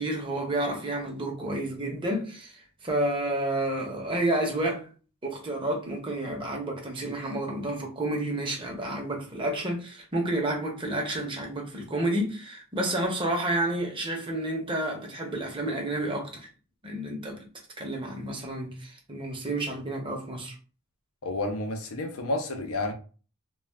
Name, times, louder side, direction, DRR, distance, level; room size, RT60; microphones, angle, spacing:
voice 1, 0.0-4.9 5.2-16.5 16.8-17.4 17.8-20.5, right 1 dB, 25° right, 0.7 m, -30 dB
voice 2, 21.2-22.9, left 2 dB, 85° left, 0.7 m, -30 dB
2.3 x 2.2 x 3.3 m
head